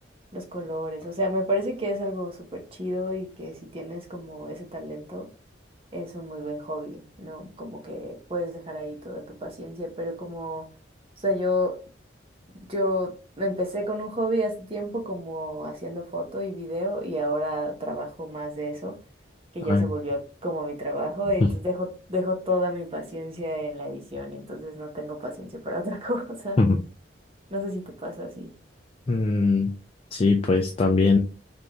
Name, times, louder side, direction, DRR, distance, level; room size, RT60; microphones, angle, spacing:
voice 1, 0.3-5.3 5.9-10.7 11.2-11.8 12.7-19.0 19.5-26.6 27.5-28.6, equal, 30° right, 0.8 m, -30 dB
voice 2, 29.1-29.7 30.1-31.2, left 3 dB, 30° left, 0.3 m, -21 dB
3.4 x 2.5 x 2.9 m
head